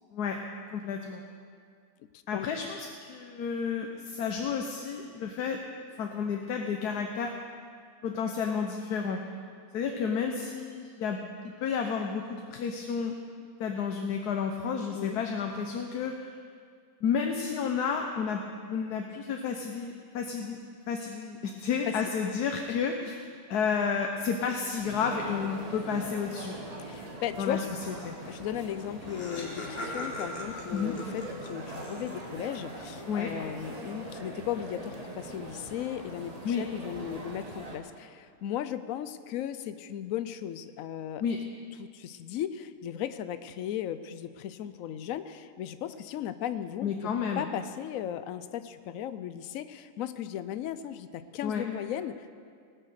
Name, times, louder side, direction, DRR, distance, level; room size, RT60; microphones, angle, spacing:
voice 1, 0.7-1.2 2.3-5.6 6.0-7.3 8.0-9.2 9.7-11.2 11.6-13.2 13.6-16.3 17.0-20.6 20.9-23.2 23.5-26.6 27.4-28.1 30.7-31.0 33.1-33.3 36.4-36.6 41.2-41.4 46.8-47.4 51.4-51.6, left 6 dB, 85° left, 3 dB, 1.3 m, -31 dB
sound 1, 24.9-37.8, right 1 dB, 25° right, 1.4 m, -42 dB
voice 2, 26.8-27.7 28.2-41.2 41.8-46.9 47.4-52.3, left 10 dB, 70° left, 12 dB, 1.0 m, -36 dB
Laughter, 28.5-28.6 28.8-32.5, left 1 dB, 40° left, 1.7 m, -40 dB
19.5 x 6.5 x 6.5 m, 2.1 s
omnidirectional pair, 1.6 m